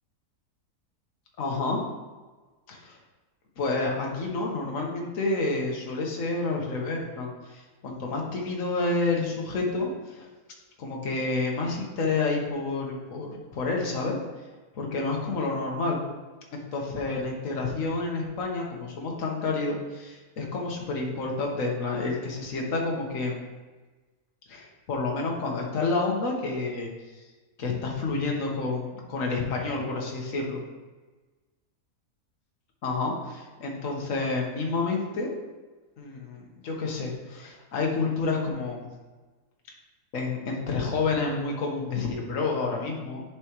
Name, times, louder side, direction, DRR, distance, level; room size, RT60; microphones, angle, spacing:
voice 1, 1.4-1.8 2.7-3.0 3.6-10.3 10.8-14.2 14.7-16.0 16.5-23.4 24.5-26.9 27.6-30.6 32.8-35.3 36.0-38.9 40.1-43.2, left 3 dB, 60° left, -1 dB, 1.6 m, -29 dB
10.0 x 4.6 x 3.1 m, 1.3 s
omnidirectional pair, 1.7 m